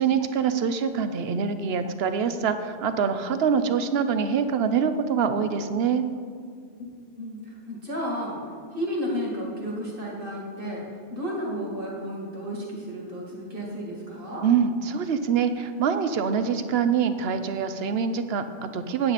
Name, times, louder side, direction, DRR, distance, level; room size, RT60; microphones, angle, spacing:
voice 1, 0.0-6.0 14.4-19.1, right 6 dB, 65° right, 10 dB, 0.9 m, -25 dB
voice 2, 7.1-8.4 8.7-10.8 11.1-14.4, equal, 50° right, -3 dB, 2.3 m, -32 dB
9.5 x 9.2 x 4.1 m, 2.2 s
omnidirectional pair, 1.2 m